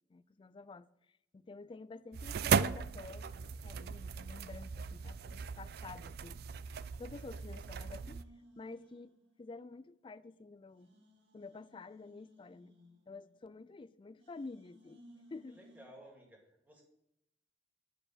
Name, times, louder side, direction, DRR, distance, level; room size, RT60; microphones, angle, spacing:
voice 1, 0.1-0.9 1.3-6.4 7.0-8.2 8.6-10.9 11.3-12.7 13.1-15.0 15.3-15.6, left 3 dB, 25° left, 0.3 m, -50 dB
sound 1, 2.1-8.2, right 6 dB, 55° right, 0.3 m, -37 dB
sound 2, 7.2-9.9 10.2-10.3 10.7-13.8 14.2-15.9, equal, 85° right, 2.2 m, -62 dB
voice 2, 15.5-16.8, equal, 10° right, 2.2 m, -56 dB
9.8 x 5.0 x 7.8 m
head